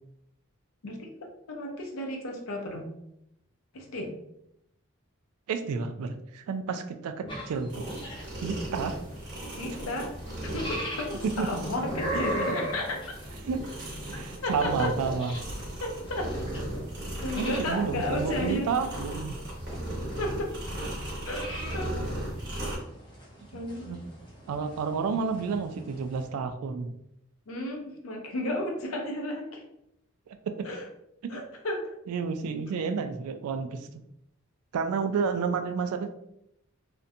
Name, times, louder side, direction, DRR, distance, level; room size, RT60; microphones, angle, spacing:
voice 1, 0.8-2.9 3.7-4.1 7.2-7.3 9.5-10.1 10.4-13.2 14.4-14.9 15.8-16.3 17.2-18.7 20.2-20.5 21.2-22.1 23.5-24.0 27.5-29.6 30.6-30.9 31.3-31.9, left 1 dB, 75° left, 2 dB, 0.6 m, -33 dB
voice 2, 5.5-7.8 8.4-9.0 11.2-11.5 13.4-13.6 14.1-15.3 17.4-19.4 23.5-24.0 24.5-26.9 30.3-30.4 32.1-33.9 34.7-36.1, right 5 dB, 90° right, 7 dB, 0.3 m, -30 dB
sound 1, 7.3-26.3, right 1 dB, 20° left, 0.5 m, -41 dB
sound 2, 7.7-22.8, right 1 dB, 50° right, 0.8 m, -37 dB
2.5 x 2.1 x 2.6 m, 0.79 s
head